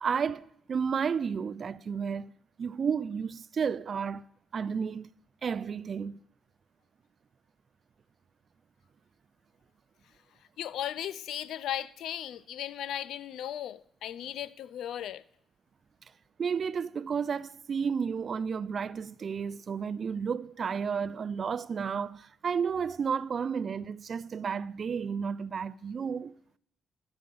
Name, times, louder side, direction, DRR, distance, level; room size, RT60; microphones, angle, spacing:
voice 1, 0.0-2.3 2.6-4.2 4.5-5.1 5.4-6.2 16.4-26.3, right 6 dB, 45° right, 0.3 m, -32 dB
voice 2, 10.6-15.2, left 11 dB, 80° left, 0.4 m, -36 dB
10.0 x 7.4 x 5.4 m
cardioid pair, 90°, 0 cm